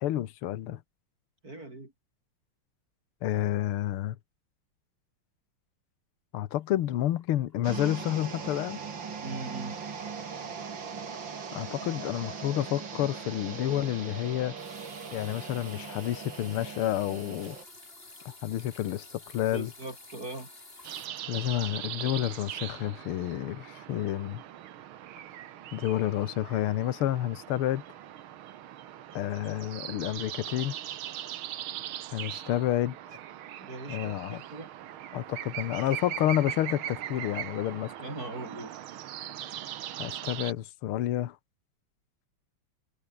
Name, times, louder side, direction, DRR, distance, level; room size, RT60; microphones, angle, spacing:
voice 1, 0.0-0.8 3.2-4.2 6.3-8.8 11.5-14.5 15.1-17.6 18.3-19.7 21.3-24.4 25.7-27.8 29.1-30.7 32.1-33.0 33.9-34.4 35.1-37.9 40.0-41.4, left 12 dB, 75° left, 1.9 m, -30 dB
voice 2, 1.4-1.9 9.2-9.8 19.5-20.5 33.6-34.7 38.0-38.7, right 2 dB, 40° right, 5.9 m, -40 dB
sound 1, 6.5-8.1 8.4-8.7 9.1-9.2 13.8-21.1, left 2 dB, 25° left, 3.9 m, -51 dB
sound 2, 7.6-17.6, right 6 dB, 55° right, 3.2 m, -40 dB
sound 3, 20.8-40.5, right 12 dB, 70° right, 1.8 m, -40 dB
omnidirectional pair, 2.4 m